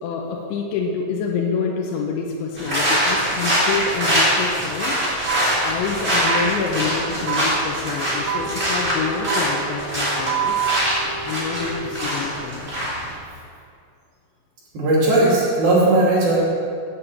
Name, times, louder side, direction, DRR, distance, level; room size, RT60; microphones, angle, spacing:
voice 1, 0.0-5.3 5.6-10.5 11.2-12.7, left 5 dB, 80° left, -1 dB, 3.0 m, -27 dB
sound 1, 2.6-13.1, equal, 15° right, 3.1 m, -23 dB
sound 2, 5.3-5.4 6.3-6.4 7.3-7.4 8.3-8.4 9.3-9.4 10.3-10.8, right 11 dB, 80° right, 3.1 m, -24 dB
Wind instrument woodwind instrument, 8.1-12.0, equal, 40° left, 1.7 m, -35 dB
voice 2, 14.7-16.4, right 2 dB, 55° right, -6 dB, 4.1 m, -17 dB
9.1 x 8.4 x 8.4 m, 2.3 s
omnidirectional pair, 5.7 m